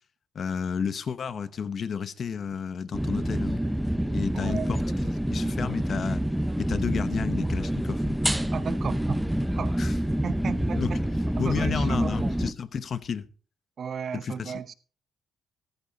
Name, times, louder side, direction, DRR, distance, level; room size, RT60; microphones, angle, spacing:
voice 1, 0.3-3.6 4.1-4.8 5.3-6.2 6.6-8.1 9.8-9.9 10.8-10.9 11.4-13.3 14.2-14.6, left 6 dB, 50° left, 0.9 m, -31 dB
sound 1, 2.9-12.5, equal, 5° right, 0.7 m, -27 dB
voice 2, 4.3-4.8 8.5-11.0 11.4-12.4 13.8-14.7, right 7 dB, 55° right, 0.8 m, -35 dB
14.5 x 13.5 x 2.8 m
cardioid pair, 90°, 0 cm